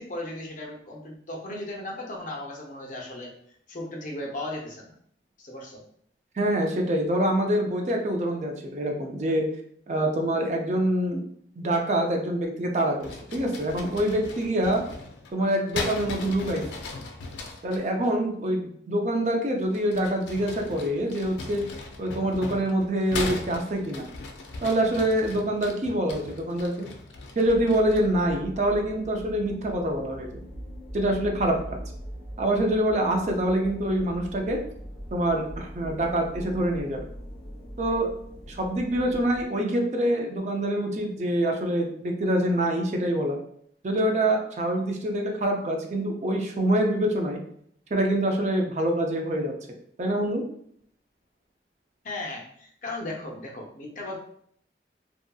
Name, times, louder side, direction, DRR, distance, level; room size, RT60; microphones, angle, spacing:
voice 1, 0.0-3.3 3.7-4.9 5.4-5.8 52.0-54.2, left 1 dB, 45° left, -1 dB, 0.6 m, -36 dB
voice 2, 6.4-9.5 9.9-11.2 11.6-14.8 15.3-16.6 17.6-21.6 22.0-24.1 24.6-26.9 27.4-30.4 30.9-31.8 32.4-34.6 35.1-37.0 37.8-38.1 38.5-43.4 43.8-47.4 47.9-49.5 50.0-50.4, right 1 dB, 40° right, 2 dB, 0.4 m, -25 dB
sound 1, 13.0-17.8 19.6-28.2, left 3 dB, 90° left, 0.4 m, -38 dB
sound 2, 27.4-39.5, equal, 15° left, 1.1 m, -41 dB
2.6 x 2.6 x 2.3 m, 0.65 s
head